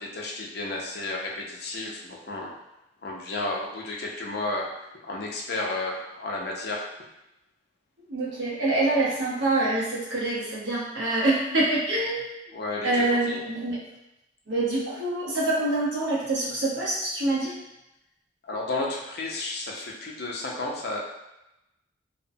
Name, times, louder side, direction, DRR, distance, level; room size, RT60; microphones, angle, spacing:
voice 1, 0.0-2.5 3.0-4.7 5.0-6.8 12.5-13.4 18.4-21.0, left 2 dB, 55° left, -2 dB, 0.5 m, -32 dB
voice 2, 8.1-12.2 12.8-13.8 14.5-17.6, right 2 dB, 75° right, -6 dB, 0.9 m, -25 dB
2.8 x 2.1 x 2.6 m, 0.92 s
head